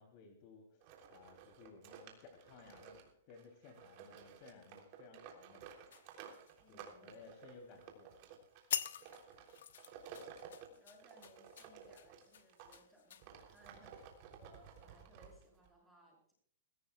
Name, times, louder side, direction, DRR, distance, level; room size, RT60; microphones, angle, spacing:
voice 1, 0.0-5.6 6.7-8.1, left 4 dB, 40° left, 3 dB, 3.0 m, -59 dB
sound 1, 0.8-12.8 13.2-15.7, right 7 dB, 40° right, 3.3 m, -55 dB
sound 2, 5.9-7.1 7.5-7.8 8.3-8.4 8.7-14.0 14.6-14.8, left 9 dB, 80° left, 1.1 m, -46 dB
voice 2, 6.6-7.3 10.4-16.3, right 1 dB, ahead, -3 dB, 7.0 m, -65 dB
22.0 x 16.5 x 2.3 m, 0.62 s
hypercardioid pair, 160°, 0 cm